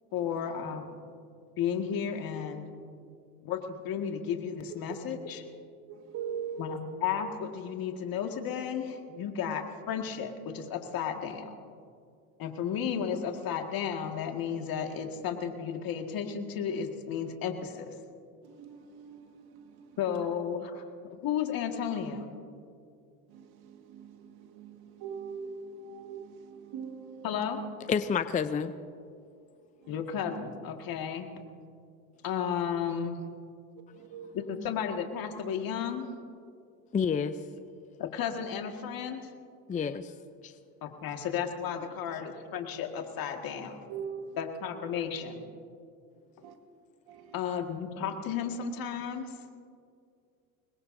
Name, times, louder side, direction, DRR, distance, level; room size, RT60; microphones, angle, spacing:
voice 1, 0.1-1.0 1.6-2.7 3.4-5.5 6.6-11.6 12.4-17.9 20.0-20.8 21.2-22.3 27.2-27.6 29.9-31.3 32.2-33.3 34.3-36.1 38.0-39.2 40.8-43.8 44.4-45.4 47.3-49.3, left 7 dB, 50° left, 4 dB, 1.9 m, -33 dB
voice 2, 6.1-6.6 18.6-19.7 23.3-23.4 23.9-24.1 24.5-27.3 34.1-34.4 43.9-44.3 46.4-46.5 47.1-47.3, right 7 dB, 60° right, 6 dB, 1.8 m, -41 dB
voice 3, 27.9-28.7 36.9-37.4 39.7-40.1 40.4-40.5, left 6 dB, 20° left, 11 dB, 0.5 m, -29 dB
24.5 x 21.0 x 2.7 m, 2.3 s
hypercardioid pair, 85°, 44 cm